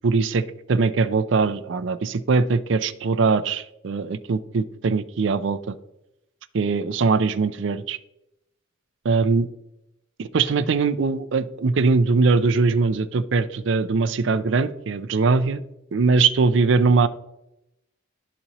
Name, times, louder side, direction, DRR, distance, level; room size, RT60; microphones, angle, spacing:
voice 1, 0.0-5.8 6.5-8.0 9.0-9.5 10.2-15.6 15.9-17.1, right 4 dB, 60° right, 13 dB, 0.4 m, -21 dB
12.5 x 4.2 x 2.9 m, 0.85 s
head